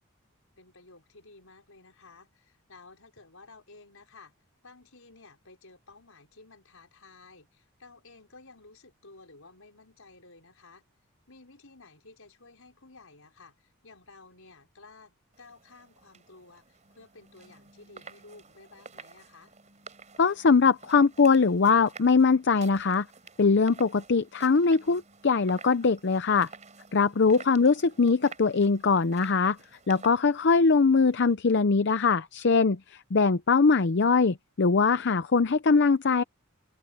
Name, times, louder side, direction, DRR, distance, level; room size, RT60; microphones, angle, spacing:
voice 1, 0.6-4.3 4.6-10.9 11.3-19.6 27.3-27.5, left 3 dB, 70° left, 5.4 m, -54 dB
sound 1, 15.3-31.4, right 5 dB, 35° right, 4.6 m, -51 dB
voice 2, 20.2-23.1 23.4-26.5 26.9-29.6 29.9-36.2, left 4 dB, 55° left, 0.6 m, -22 dB
head